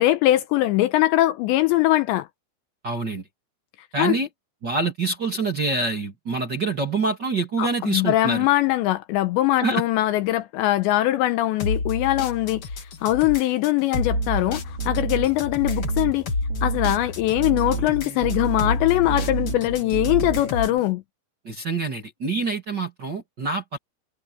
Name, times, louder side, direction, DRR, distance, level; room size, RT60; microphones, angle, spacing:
voice 1, 0.0-2.3 4.0-4.2 7.6-16.3 16.6-21.0, left 16 dB, 80° left, 2.8 m, -22 dB
voice 2, 2.8-3.2 3.9-4.3 4.6-8.5 9.6-9.8 21.4-23.8, right 3 dB, 30° right, 2.2 m, -26 dB
sound 1, 11.6-20.8, left 3 dB, 45° left, 2.0 m, -30 dB
sound 2, 13.9-20.8, right 4 dB, 60° right, 6.1 m, -30 dB
omnidirectional pair, 5.6 m